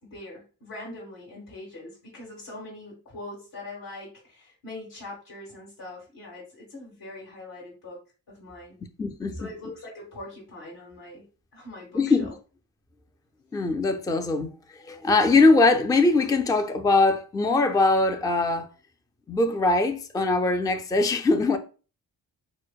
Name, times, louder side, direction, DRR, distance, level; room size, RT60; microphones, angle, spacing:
voice 1, 0.0-8.0 8.3-8.8 9.3-11.2 11.5-12.3, left 2 dB, 60° left, 1.7 m, -42 dB
voice 2, 9.0-9.5 11.9-12.3 13.5-14.5 14.8-18.7 19.3-21.6, left 3 dB, 10° left, 0.3 m, -21 dB
6.2 x 2.1 x 2.3 m
wide cardioid pair, 95°, 39 cm